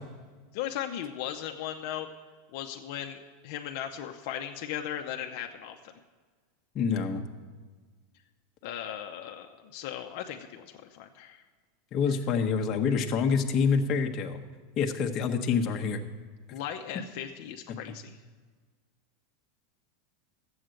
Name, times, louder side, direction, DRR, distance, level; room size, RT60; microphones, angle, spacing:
voice 1, 0.5-2.1 2.5-5.8 8.6-11.4 16.5-18.2, left 10 dB, 55° left, 4 dB, 0.7 m, -37 dB
voice 2, 6.7-7.2 11.9-14.4 14.8-16.0 16.5-16.6 17.7-17.8, left 6 dB, 30° left, 3 dB, 1.0 m, -27 dB
12.5 x 8.0 x 7.7 m, 1.5 s
supercardioid pair, 160°, 0 cm